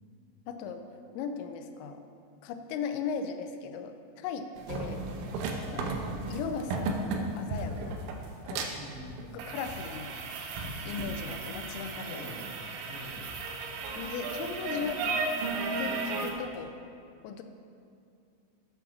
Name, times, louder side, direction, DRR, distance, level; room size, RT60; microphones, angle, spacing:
voice 1, 0.5-0.8 1.1-2.0 2.4-5.0 5.7-8.0 8.4-8.7 9.3-10.1 10.8-12.0 14.0-15.0 15.8-16.7 17.2-17.4, left 6 dB, 85° left, 7 dB, 2.6 m, -37 dB
sound 1, 4.6-16.3, right 3 dB, 85° right, 3.1 m, -35 dB
sound 2, 5.4-5.9 6.2-8.3 9.6-11.8 12.3-16.6, equal, 65° right, 2.1 m, -48 dB
voice 2, 8.7-9.4 11.8-12.5 12.9-13.3 16.2-16.3, left 1 dB, 65° left, -6 dB, 3.6 m, -45 dB
8.2 x 5.7 x 6.2 m, 2.4 s
omnidirectional pair, 5.6 m